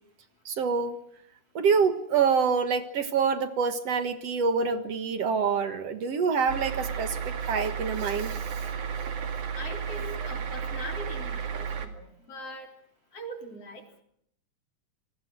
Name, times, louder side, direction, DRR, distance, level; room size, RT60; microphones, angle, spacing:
voice 1, 0.5-1.0 1.5-8.6, right 5 dB, 60° right, 9 dB, 2.4 m, -26 dB
sound 1, 6.5-11.9, right 7 dB, 90° right, 3.6 m, -33 dB
voice 2, 9.5-12.7 13.1-14.0, left 1 dB, 55° left, 3 dB, 4.7 m, -41 dB
27.5 x 21.5 x 6.2 m, 0.69 s
omnidirectional pair, 3.3 m